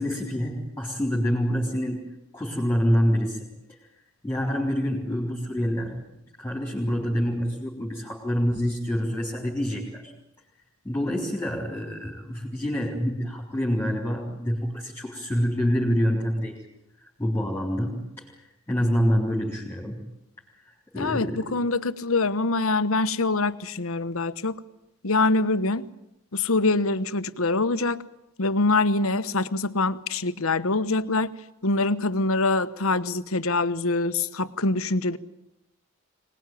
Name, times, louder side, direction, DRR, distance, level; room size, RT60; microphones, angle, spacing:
voice 1, 0.0-2.0 2.3-3.5 4.2-6.0 6.4-10.1 10.8-16.6 17.2-20.0 20.9-21.5, equal, 10° left, -3 dB, 3.8 m, -26 dB
voice 2, 21.0-24.6 25.0-25.9 26.3-28.0 28.4-31.3 31.6-35.2, left 3 dB, 70° left, 12 dB, 1.1 m, -24 dB
24.5 x 19.5 x 9.3 m, 0.82 s
head